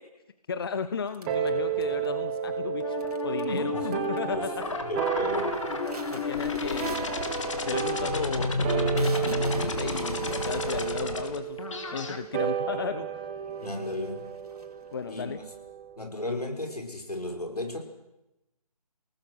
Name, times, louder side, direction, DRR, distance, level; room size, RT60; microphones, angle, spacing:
voice 1, 0.5-3.0 3.2-4.6 6.1-7.1 7.6-11.6 11.9-13.1 14.9-15.4, left 6 dB, 40° left, 12 dB, 0.9 m, -34 dB
sound 1, 1.1-2.2 3.0-3.6 3.8-4.4 4.7-5.1 5.5-12.5 13.2-13.3 13.6-15.2, right 2 dB, 80° right, 3.6 m, -46 dB
sound 2, 1.3-16.0, right 9 dB, 15° right, 1.3 m, -33 dB
sound 3, 2.8-12.2, left 3 dB, 55° left, 2.7 m, -31 dB
voice 2, 3.5-3.9 4.3-4.5 4.9-5.6 13.6-14.3 15.1-15.3 16.0-17.8, left 1 dB, 80° left, 3 dB, 5.7 m, -34 dB
29.5 x 18.5 x 6.3 m, 0.92 s
figure-of-eight pair, 155°, 20 cm